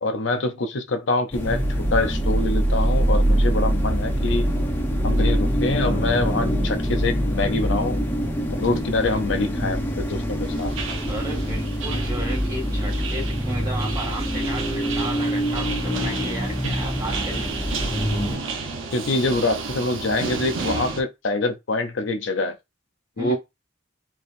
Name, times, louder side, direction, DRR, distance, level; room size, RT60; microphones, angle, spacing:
voice 1, 0.0-4.5 5.0-8.0 8.6-10.7 16.6-16.7 18.9-22.6 23.2-23.4, left 2 dB, 60° left, 0.6 m, -25 dB
sound 1, 1.3-18.4, equal, 10° left, 0.7 m, -24 dB
sound 2, 10.4-21.0, right 4 dB, 70° right, 0.9 m, -32 dB
voice 2, 11.1-17.5 23.2-23.4, right 1 dB, 20° right, 2.3 m, -34 dB
4.5 x 3.5 x 2.6 m
head